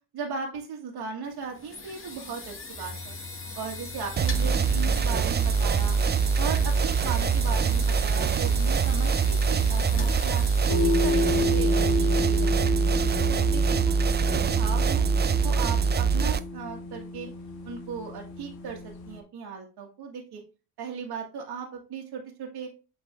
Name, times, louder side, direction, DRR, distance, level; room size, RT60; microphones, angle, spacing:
voice 1, 0.1-3.1 3.5-6.0 6.4-10.4 10.8-12.5 12.8-12.9 13.3-13.9 14.3-15.2 15.4-17.3 17.6-20.4 20.8-22.7, right 5 dB, 60° right, 0 dB, 1.8 m, -37 dB
sound 1, 1.2-14.0, left 3 dB, 30° left, 1.8 m, -40 dB
sound 2, 4.2-16.4, right 6 dB, 25° right, 0.5 m, -24 dB
sound 3, 10.7-19.2, left 2 dB, 55° left, 1.4 m, -30 dB
7.5 x 4.0 x 3.4 m, 0.32 s
supercardioid pair, 65°, 43 cm